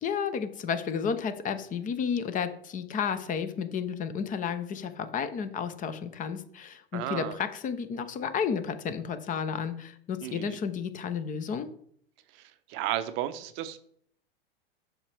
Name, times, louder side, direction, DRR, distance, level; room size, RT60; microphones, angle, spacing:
voice 1, 0.0-11.7, left 6 dB, 25° left, 11 dB, 0.7 m, -32 dB
voice 2, 6.9-7.4 10.2-10.6 12.3-13.8, right 13 dB, 40° right, 12 dB, 0.6 m, -34 dB
7.2 x 5.9 x 3.4 m, 0.62 s
hypercardioid pair, 100°, 30 cm